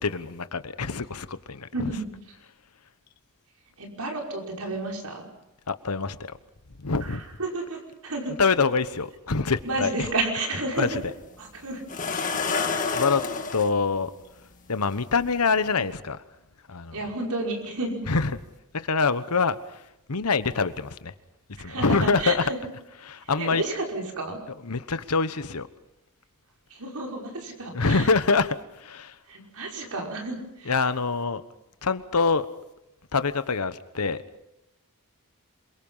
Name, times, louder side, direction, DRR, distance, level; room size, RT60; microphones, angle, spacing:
voice 1, 0.0-1.9 5.7-6.4 6.8-7.2 8.4-10.1 10.8-11.1 12.9-13.2 13.5-14.1 14.7-16.2 16.7-17.0 18.1-18.4 18.7-21.1 21.6-22.5 23.0-23.6 24.6-25.7 27.7-29.2 30.6-31.4 31.8-32.5 33.1-34.2, left 4 dB, 85° left, 1.1 m, -25 dB
voice 2, 1.7-2.1 3.8-5.3 7.4-8.4 9.6-10.9 11.4-11.8 16.9-18.0 21.6-22.6 23.2-24.4 26.7-28.1 29.3-30.7, right 2 dB, 85° right, 5.5 m, -31 dB
sound 1, 10.8-10.9 11.9-13.7 14.9-15.0 15.5-15.7, left 4 dB, 35° left, 1.8 m, -28 dB
27.0 x 23.5 x 5.6 m
head